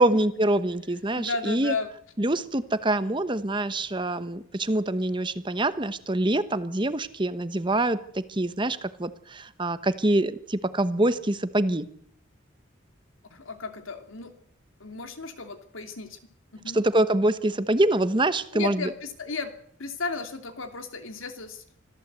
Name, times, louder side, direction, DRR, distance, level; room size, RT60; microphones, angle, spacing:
voice 1, 0.0-1.8 2.2-11.9 16.7-18.9, right 1 dB, 25° right, 13 dB, 1.0 m, -25 dB
voice 2, 1.1-1.9 13.3-14.3 14.8-16.2 16.5-16.8 18.5-19.5 19.8-21.8, left 4 dB, 85° left, 7 dB, 2.8 m, -34 dB
25.5 x 14.5 x 8.2 m, 0.65 s
head